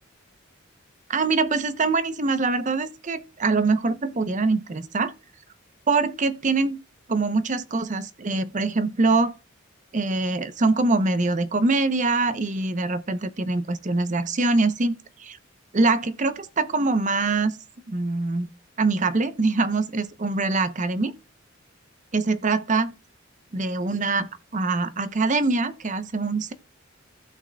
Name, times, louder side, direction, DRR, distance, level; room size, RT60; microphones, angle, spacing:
voice 1, 1.1-5.1 5.9-6.8 7.1-9.3 9.9-14.9 15.2-15.4 15.7-17.5 17.9-18.5 18.8-21.1 22.1-22.9 23.5-26.5, right 3 dB, 40° right, 0.7 m, -24 dB
15.5 x 6.1 x 2.2 m
head